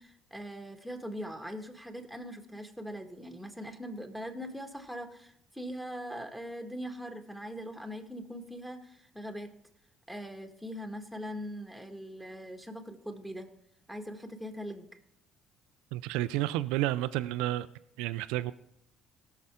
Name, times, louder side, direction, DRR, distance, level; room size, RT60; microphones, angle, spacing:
voice 1, 0.0-9.5 10.1-13.5 13.9-14.9, equal, ahead, 1.9 m, -41 dB
voice 2, 15.9-17.7 18.0-18.5, right 15 dB, 80° right, 0.3 m, -30 dB
17.5 x 6.6 x 3.7 m
supercardioid pair, 65°, 0 cm